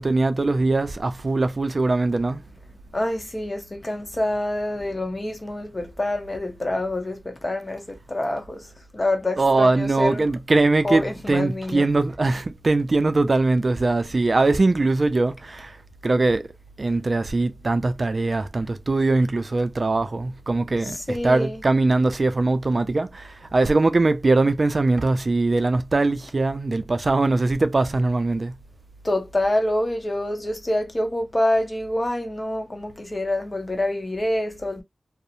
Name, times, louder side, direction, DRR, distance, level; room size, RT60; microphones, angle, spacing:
voice 1, 0.0-2.4 9.4-15.8 16.0-16.5 16.8-28.5, right 3 dB, 55° right, 0.4 m, -21 dB
voice 2, 2.9-10.3 10.8-11.8 20.8-21.6 29.0-34.8, left 1 dB, 35° left, 0.8 m, -26 dB
2.7 x 2.0 x 2.4 m
wide cardioid pair, 55°, 0 cm